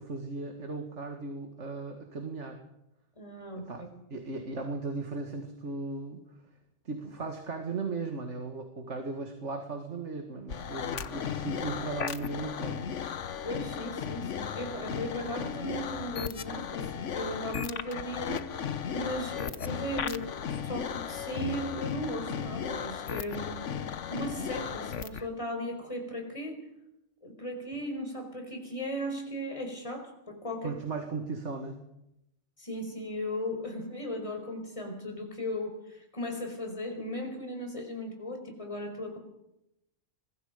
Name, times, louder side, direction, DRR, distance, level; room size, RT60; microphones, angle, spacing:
voice 1, 0.0-2.6 3.7-6.4 6.8-13.0 30.6-31.8, right 3 dB, 80° right, 4 dB, 2.4 m, -37 dB
voice 2, 3.2-3.9 13.4-18.5 18.9-23.8 24.1-26.6 27.2-30.7 32.6-39.2, equal, 25° left, 3 dB, 4.9 m, -37 dB
sound 1, 10.5-25.3, left 7 dB, 90° left, 1.3 m, -35 dB
25.5 x 22.0 x 5.2 m, 0.84 s
omnidirectional pair, 1.2 m